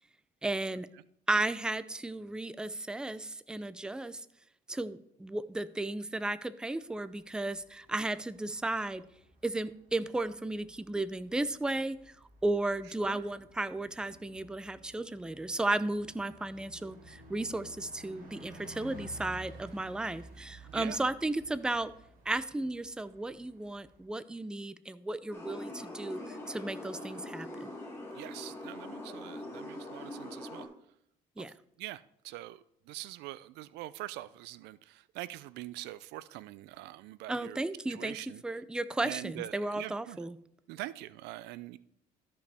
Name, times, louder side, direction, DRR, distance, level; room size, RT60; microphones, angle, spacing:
voice 1, 0.4-0.9 1.3-4.2 4.7-9.0 9.4-12.0 12.4-21.9 22.3-27.7 31.4-31.5 37.3-38.2 38.4-40.4, right 2 dB, 5° right, 14 dB, 0.4 m, -34 dB
Bus, 7.1-24.0, right 1 dB, 55° right, 2.1 m, -54 dB
voice 2, 20.7-21.0 28.1-30.7 31.4-31.5 31.8-37.6 37.9-38.4 39.0-40.2 40.7-41.8, right 16 dB, 85° right, 17 dB, 0.4 m, -44 dB
sound 1, 25.3-30.7, left 1 dB, 15° left, 2.8 m, -43 dB
14.0 x 5.2 x 3.4 m, 0.74 s
cardioid pair, 110°, 17 cm